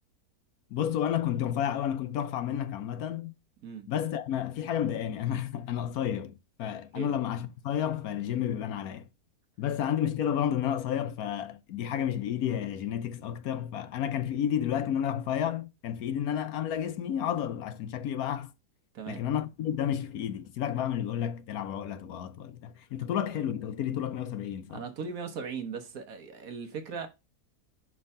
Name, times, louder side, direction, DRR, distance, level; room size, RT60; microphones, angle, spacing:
voice 1, 0.7-3.3 3.9-9.1 9.6-18.5 19.1-24.8, left 9 dB, 70° left, 1.0 m, -31 dB
voice 2, 18.9-19.2 24.7-27.1, right 6 dB, 65° right, 1.4 m, -38 dB
5.4 x 3.5 x 5.3 m
omnidirectional pair, 1.7 m